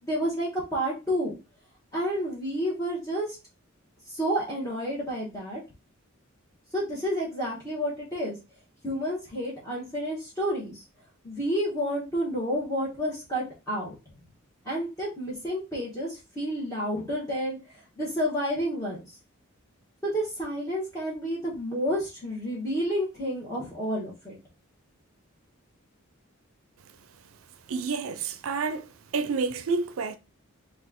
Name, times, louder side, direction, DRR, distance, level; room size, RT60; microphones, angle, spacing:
voice 1, 0.0-1.3 1.9-3.4 4.1-5.6 6.7-8.4 8.8-10.7 11.2-14.0 14.6-17.6 18.0-19.0 20.0-24.4, equal, 15° left, 1.2 m, -30 dB
voice 2, 27.7-30.2, right 4 dB, 80° right, 0.5 m, -29 dB
4.1 x 2.4 x 3.7 m
head